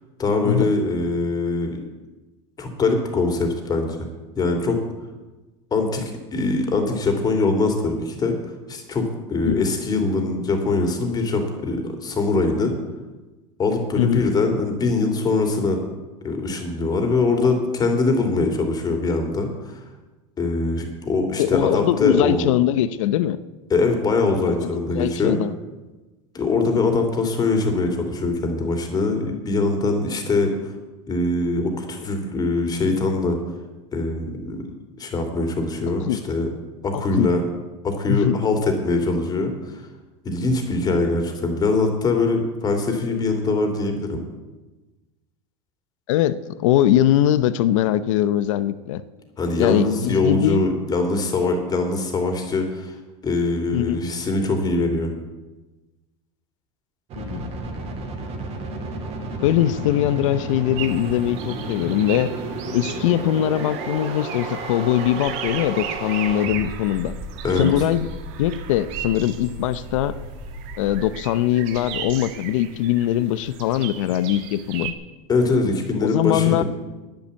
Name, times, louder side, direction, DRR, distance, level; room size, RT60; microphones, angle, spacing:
voice 1, 0.2-1.8 2.6-4.1 4.3-4.8 5.7-8.4 8.7-12.8 13.6-15.8 16.2-19.8 20.4-22.5 23.7-25.4 26.3-30.7 31.1-33.4 33.9-36.5 36.8-37.4 37.8-39.8 40.2-44.2 49.4-53.0 53.2-55.1 67.4-67.7 75.3-76.6, left 3 dB, 25° left, 4 dB, 2.9 m, -22 dB
voice 2, 21.3-23.4 24.5-25.5 36.1-36.2 36.9-37.3 38.1-38.4 46.1-49.0 49.6-50.6 53.7-54.0 57.1-57.5 59.4-62.3 62.7-67.1 67.6-68.1 68.4-70.2 70.8-74.9 76.0-76.6, left 12 dB, 85° left, 15 dB, 0.8 m, -21 dB
sound 1, 57.1-71.1, right 3 dB, 40° right, 2.9 m, -33 dB
sound 2, 60.8-74.9, right 9 dB, 65° right, 1.6 m, -37 dB
10.5 x 10.5 x 8.3 m, 1.2 s
supercardioid pair, 135°, 16 cm